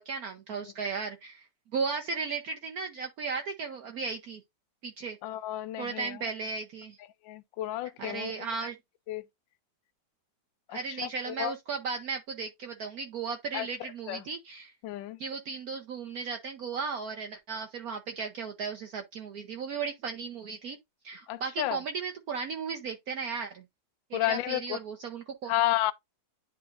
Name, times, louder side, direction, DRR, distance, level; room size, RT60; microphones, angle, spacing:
voice 1, 0.0-4.4 4.8-5.2 5.8-7.0 8.0-8.8 10.7-14.7 15.2-20.8 21.0-23.6 24.1-25.5, right 5 dB, 60° right, 1.1 m, -35 dB
voice 2, 5.2-6.1 7.3-8.3 9.1-9.2 11.3-11.5 13.5-13.7 14.1-14.2 14.8-15.2 21.3-21.8 24.1-24.8 25.5-25.9, left 14 dB, 85° left, 1.3 m, -31 dB
10.5 x 4.1 x 2.5 m
omnidirectional pair, 2.0 m